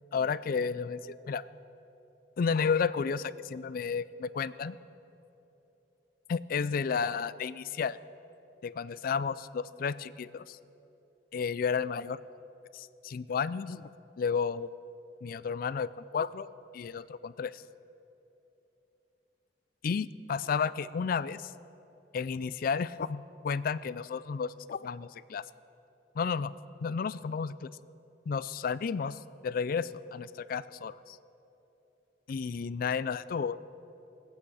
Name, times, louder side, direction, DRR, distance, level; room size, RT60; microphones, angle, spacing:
voice 1, 0.1-1.4 2.4-4.8 6.3-8.0 8.6-10.6 11.3-12.2 12.7-13.9 14.2-14.7 15.2-16.5 16.7-17.6 19.8-21.5 22.1-25.4 26.2-26.5 26.8-27.7 28.3-31.2 32.3-33.6, left 6 dB, 50° left, 17 dB, 0.3 m, -32 dB
21.5 x 8.6 x 4.8 m, 2.9 s
head